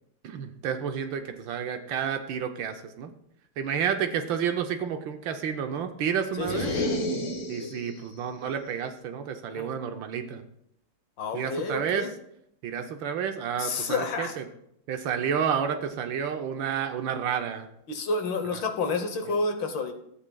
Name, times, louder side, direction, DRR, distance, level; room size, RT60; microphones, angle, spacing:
voice 1, 0.2-3.1 3.6-6.8 7.5-10.5 11.3-12.1 12.6-14.5 14.9-17.7 18.5-18.6 19.3-19.4, right 7 dB, 70° right, 6 dB, 1.4 m, -30 dB
voice 2, 6.4-6.8 9.5-9.7 11.2-12.1 13.6-14.3 17.9-19.9, left 3 dB, 65° left, 5 dB, 1.6 m, -30 dB
sound 1, 6.4-8.0, left 1 dB, 45° left, 1.3 m, -30 dB
14.5 x 8.4 x 2.3 m, 0.74 s
omnidirectional pair, 2.3 m